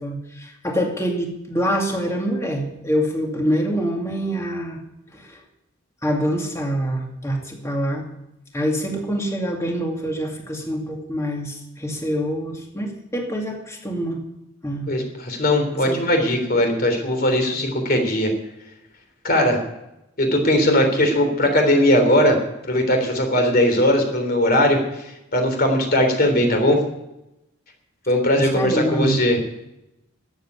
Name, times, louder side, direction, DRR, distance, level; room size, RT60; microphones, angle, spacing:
voice 1, 0.0-4.8 5.1-5.4 6.0-8.1 8.5-14.2 14.6-14.9 15.9-16.0 16.5-16.6 28.4-29.3, equal, 15° left, 1 dB, 2.4 m, -25 dB
voice 2, 14.9-18.3 19.2-19.6 20.2-22.4 22.6-25.0 25.3-26.8 28.1-29.4, left 1 dB, 45° left, 4 dB, 3.3 m, -19 dB
13.5 x 8.1 x 9.6 m, 0.89 s
head